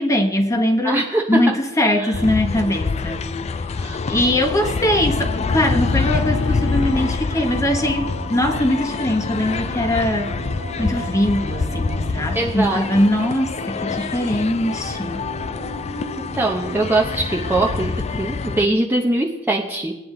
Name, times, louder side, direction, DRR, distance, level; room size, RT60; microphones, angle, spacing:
voice 1, 0.0-3.3 4.1-10.4 10.8-15.3, left 1 dB, 15° left, 3 dB, 1.2 m, -21 dB
voice 2, 0.8-1.5 2.0-2.1 3.8-4.0 12.3-12.9 16.3-20.0, right 2 dB, 10° right, -1 dB, 0.8 m, -22 dB
sound 1, 2.1-18.7, left 4 dB, 30° left, 0.3 m, -26 dB
Bowed string instrument, 3.5-7.3, left 5 dB, 65° left, 0.8 m, -34 dB
sound 2, 6.4-17.8, right 2 dB, 55° right, 1.4 m, -37 dB
17.5 x 9.6 x 3.8 m, 1.0 s
head